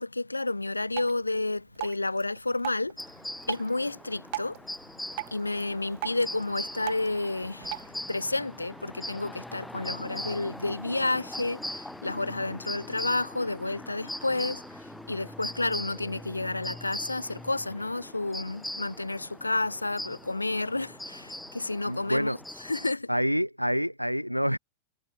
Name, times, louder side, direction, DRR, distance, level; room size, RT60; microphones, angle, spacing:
voice 1, 0.0-3.0 3.5-4.6 5.3-23.1, left 2 dB, 85° left, 0.9 m, -31 dB
Drip, 0.9-7.9, right 20 dB, 50° right, 6.4 m, -41 dB
sound 1, 3.0-22.9, left 1 dB, 5° left, 5.5 m, -41 dB
voice 2, 21.9-22.4 23.1-24.6, equal, 90° right, 2.0 m, -27 dB
figure-of-eight pair, 90°, 0 cm